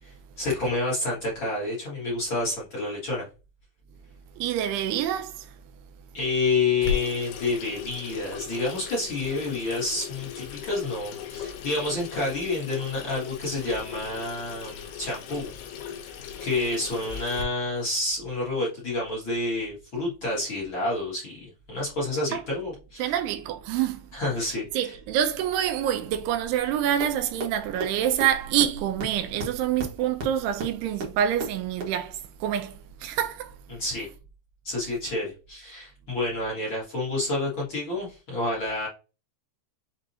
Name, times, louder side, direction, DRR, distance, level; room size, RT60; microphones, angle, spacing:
voice 1, 0.0-3.2 6.1-15.5 15.8-16.1 16.4-23.1 24.1-25.0 33.7-34.1 34.6-38.9, left 2 dB, 50° left, 1.6 m, -29 dB
voice 2, 4.4-5.5 22.3-22.4 23.0-24.1 24.7-33.5, right 10 dB, 85° right, 2.5 m, -26 dB
Water tap faucet / Sink (filling or washing), 6.8-17.4, left 8 dB, 85° left, 2.5 m, -37 dB
sound 1, 27.0-27.1 27.4-27.5 27.8-27.9 28.2-28.3 28.6-28.7 29.0-29.1 29.4-29.5 29.8-29.9 30.2-30.3 30.6-30.7 31.0-31.1 31.4-31.5 31.8-31.9, right 2 dB, 65° right, 1.5 m, -31 dB
6.6 x 2.8 x 2.7 m
omnidirectional pair, 4.8 m